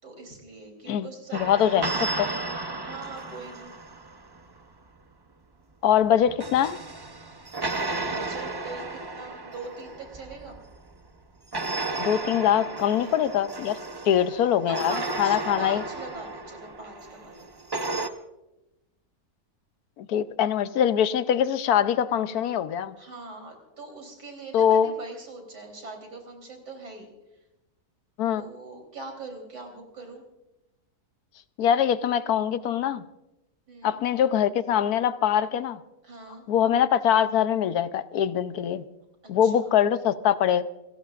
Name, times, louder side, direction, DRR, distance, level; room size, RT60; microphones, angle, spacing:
voice 1, 0.0-2.0 2.8-3.7 7.7-10.6 13.0-13.2 14.7-17.5 23.0-27.1 28.4-30.3 33.7-34.0 36.0-36.4 39.4-39.7, right 2 dB, 90° right, 2 dB, 4.1 m, -42 dB
voice 2, 0.9-1.8 2.2-2.3 5.8-6.8 12.0-13.8 14.1-15.8 20.0-23.0 24.5-24.9 28.2-28.4 31.6-33.0 33.8-35.8 36.5-38.8 39.3-40.6, left 9 dB, 70° left, 13 dB, 1.2 m, -23 dB
sound 1, 1.3-4.5 6.0-11.0 11.5-18.1, right 2 dB, 25° right, 0.5 m, -34 dB
28.5 x 17.5 x 2.5 m, 0.95 s
omnidirectional pair, 1.7 m